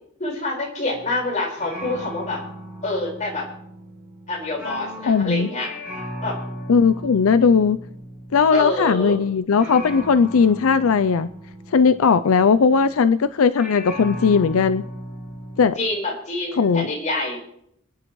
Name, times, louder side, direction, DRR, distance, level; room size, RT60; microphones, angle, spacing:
voice 1, 0.2-2.4 2.8-3.5 4.3-5.7 6.2-6.4 8.5-9.2 15.8-17.4, left 2 dB, 35° left, -1 dB, 4.8 m, -26 dB
sound 1, 0.9-1.3 1.6-13.2 13.6-15.7, equal, 5° right, 7.2 m, -37 dB
voice 2, 5.1-5.5 6.7-7.8 8.3-11.3 11.7-14.8 15.6-15.8 16.6-16.9, left 5 dB, 85° left, 12 dB, 0.5 m, -18 dB
27.0 x 10.5 x 3.1 m, 0.71 s
head